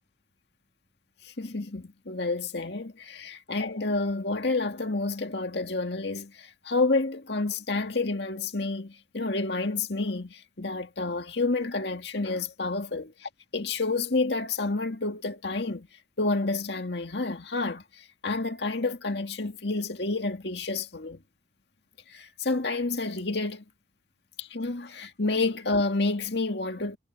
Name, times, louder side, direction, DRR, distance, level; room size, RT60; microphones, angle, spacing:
voice 1, 1.2-15.9 16.2-21.2 22.1-23.6 24.4-27.0, left 3 dB, 60° left, 2.1 m, -29 dB
head